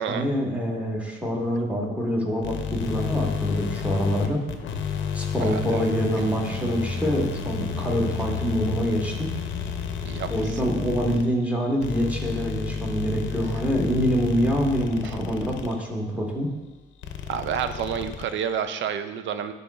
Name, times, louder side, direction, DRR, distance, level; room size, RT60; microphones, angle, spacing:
voice 1, 0.1-4.4 5.1-9.3 10.3-16.5, equal, 5° right, -2 dB, 1.4 m, -25 dB
sound 1, 2.4-15.9 17.0-18.6, left 6 dB, 70° left, 0.6 m, -31 dB
voice 2, 5.4-5.9 10.0-10.3 15.0-15.2 17.3-19.5, right 8 dB, 70° right, 10 dB, 0.5 m, -29 dB
10.5 x 4.1 x 2.3 m, 1.1 s
cardioid pair, 90°, 20 cm